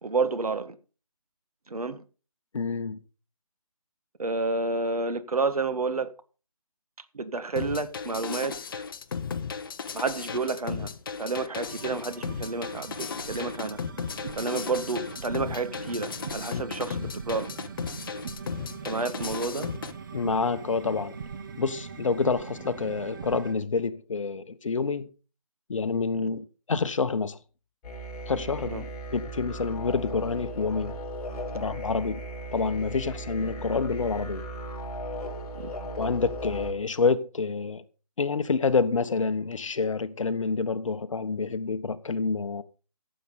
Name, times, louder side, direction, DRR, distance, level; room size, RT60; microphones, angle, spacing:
voice 1, 0.0-0.8 1.7-2.0 4.2-6.1 7.1-8.6 9.9-10.9 11.2-13.8 14.4-17.5 18.9-19.7 26.2-26.3 28.7-28.8 35.5-35.7, right 3 dB, 75° right, 1.6 m, -30 dB
voice 2, 2.5-3.0 13.4-13.5 20.1-21.2 21.6-25.1 25.7-27.4 28.3-31.0 31.5-32.2 32.5-34.4 36.0-37.8 38.2-42.6, left 4 dB, 55° left, 1.2 m, -28 dB
sound 1, 7.6-19.9, left 6 dB, 35° left, 1.0 m, -35 dB
sound 2, 11.6-23.5, right 6 dB, 35° right, 1.0 m, -41 dB
sound 3, 27.8-36.7, right 1 dB, 20° left, 4.3 m, -37 dB
15.0 x 7.7 x 5.3 m
figure-of-eight pair, 160°, 19 cm